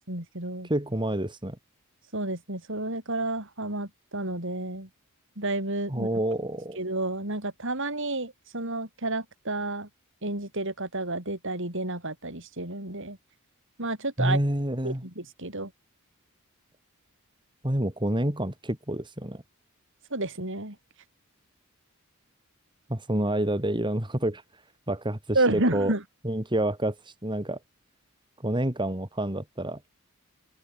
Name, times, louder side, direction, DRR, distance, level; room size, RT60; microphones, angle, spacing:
voice 1, 0.1-0.7 2.1-4.9 5.4-6.1 6.8-9.9 10.2-13.2 13.8-14.4 14.8-15.7 20.1-20.8 25.3-26.0, right 2 dB, 55° right, 6.3 m, -30 dB
voice 2, 0.6-1.6 5.9-6.8 14.2-15.0 17.6-19.4 22.9-24.4 24.9-25.9 26.2-27.6 28.4-29.8, right 1 dB, 20° right, 2.7 m, -28 dB
open air
head